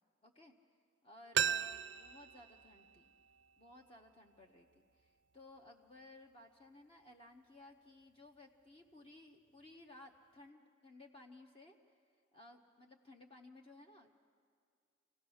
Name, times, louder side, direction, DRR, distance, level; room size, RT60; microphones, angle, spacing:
voice 1, 0.2-0.5 1.0-3.1 3.6-11.8 12.3-14.1, left 2 dB, 30° left, 2 dB, 0.9 m, -58 dB
sound 1, 1.3-4.1 4.4-4.5, right 8 dB, 70° right, 0.4 m, -39 dB
26.0 x 16.5 x 6.4 m, 2.2 s
head